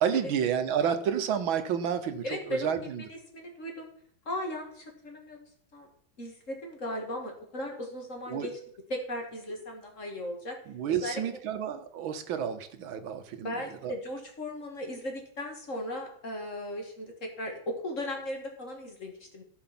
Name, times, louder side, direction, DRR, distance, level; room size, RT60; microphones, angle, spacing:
voice 1, 0.0-3.1 8.3-8.5 10.7-13.9, right 8 dB, 85° right, 9 dB, 1.8 m, -30 dB
voice 2, 2.2-3.9 4.3-5.4 5.7-5.9 6.2-8.5 8.9-10.6 10.9-11.2 13.4-19.4, left 1 dB, 40° left, 2 dB, 2.4 m, -37 dB
14.0 x 5.7 x 6.0 m, 0.62 s
omnidirectional pair, 2.1 m